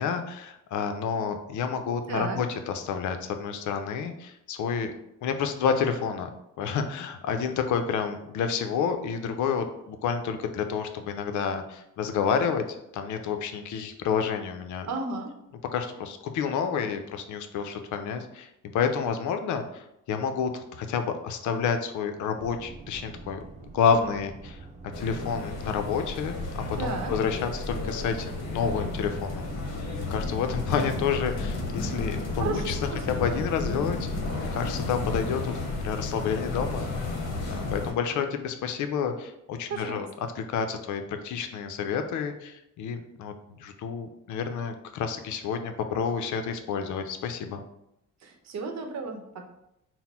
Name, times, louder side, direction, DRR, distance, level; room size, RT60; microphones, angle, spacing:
voice 1, 0.0-4.9 5.2-6.3 6.6-12.6 12.9-14.9 15.7-23.4 23.7-24.6 25.0-29.5 30.1-32.8 33.1-34.0 34.3-36.9 37.4-40.1 40.5-47.6, left 6 dB, 75° left, 7 dB, 0.5 m, -29 dB
voice 2, 2.1-2.4 14.9-15.3 26.7-27.1 32.4-33.1 39.7-40.1 48.2-49.4, right 4 dB, 65° right, 3 dB, 0.8 m, -33 dB
sound 1, 22.4-30.0, right 3 dB, 25° right, 0.4 m, -45 dB
sound 2, 24.9-37.9, left 3 dB, 55° left, 0.9 m, -32 dB
4.1 x 2.1 x 4.2 m, 0.82 s
cardioid pair, 90°, 30 cm